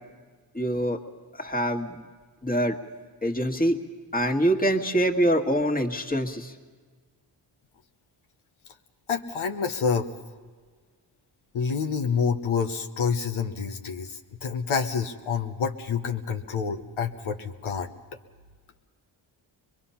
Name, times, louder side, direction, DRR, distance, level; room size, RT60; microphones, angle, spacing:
voice 1, 0.5-1.0 1.4-2.0 2.4-2.8 3.2-3.8 4.1-6.5, right 1 dB, 20° left, 1 dB, 1.8 m, -24 dB
voice 2, 9.1-10.1 11.5-17.9, left 6 dB, 85° left, 4 dB, 1.1 m, -28 dB
23.5 x 22.0 x 5.7 m, 1.5 s
cardioid pair, 55°, 47 cm